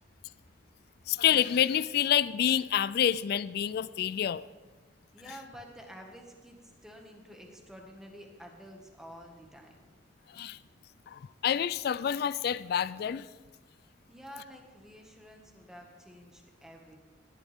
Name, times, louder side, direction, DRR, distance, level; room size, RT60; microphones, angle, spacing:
voice 1, 1.1-4.4 10.3-10.6 11.1-13.3, left 9 dB, 55° left, 17 dB, 0.3 m, -28 dB
voice 2, 5.1-9.8 14.1-17.0, equal, 5° right, 1 dB, 1.8 m, -50 dB
18.0 x 12.0 x 3.6 m, 1.3 s
head